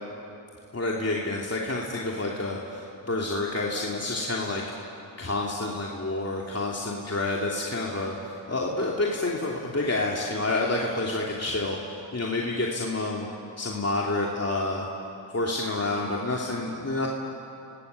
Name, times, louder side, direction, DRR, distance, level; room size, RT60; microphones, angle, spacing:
voice 1, 0.7-4.6 5.2-11.8 12.1-13.3 13.6-14.9 15.3-17.1, left 2 dB, 35° left, -2 dB, 3.0 m, -28 dB
29.5 x 19.0 x 8.4 m, 2.8 s
cardioid pair, 45°, 46 cm